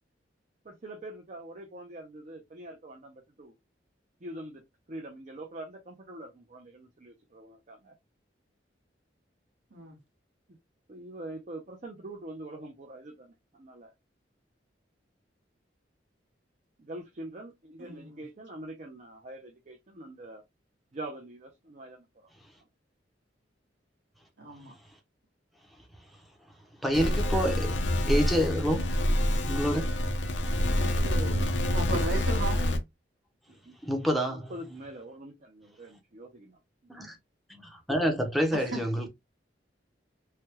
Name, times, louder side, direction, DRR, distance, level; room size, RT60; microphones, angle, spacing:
voice 1, 0.6-3.5 4.2-4.6 4.9-8.0 10.9-13.9 16.8-20.4 20.9-22.3 30.4-31.5 33.5-33.8 34.3-36.6, right 1 dB, 45° right, 0.6 m, -44 dB
voice 2, 17.8-18.2 24.4-24.8 31.7-32.6 38.5-38.8, right 2 dB, 80° right, 1.4 m, -35 dB
voice 3, 26.8-27.8 28.1-28.9 29.5-29.9 33.8-34.5 36.9-37.2 37.6-39.1, equal, ahead, 0.6 m, -27 dB
sound 1, 26.9-32.8, left 1 dB, 85° left, 0.7 m, -27 dB
3.3 x 2.2 x 2.9 m
head